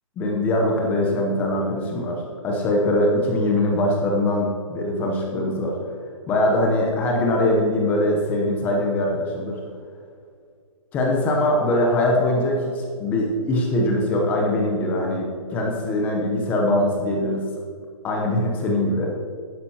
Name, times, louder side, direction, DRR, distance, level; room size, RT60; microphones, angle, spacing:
voice 1, 0.2-5.8 6.3-9.6 10.9-17.5 18.0-19.1, left 1 dB, 10° left, -1 dB, 0.7 m, -22 dB
12.0 x 10.0 x 2.9 m, 2.2 s
hypercardioid pair, 170°, 18 cm